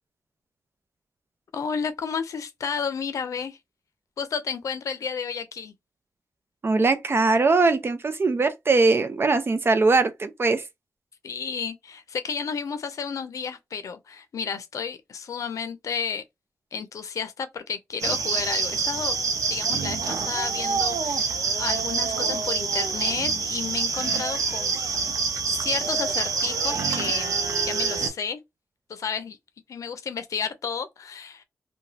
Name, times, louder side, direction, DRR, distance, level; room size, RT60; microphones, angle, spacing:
voice 1, 1.5-3.6 4.2-5.7 11.2-16.2 16.7-19.2 19.5-24.8 25.5-27.3 27.6-28.4 28.9-29.4 29.7-31.4, left 6 dB, 75° left, 0.5 m, -32 dB
voice 2, 6.6-10.6, right 3 dB, 45° right, 0.6 m, -21 dB
sound 1, 18.0-28.1, right 5 dB, 85° right, 0.6 m, -26 dB
2.8 x 2.2 x 2.7 m
cardioid pair, 60°, 6 cm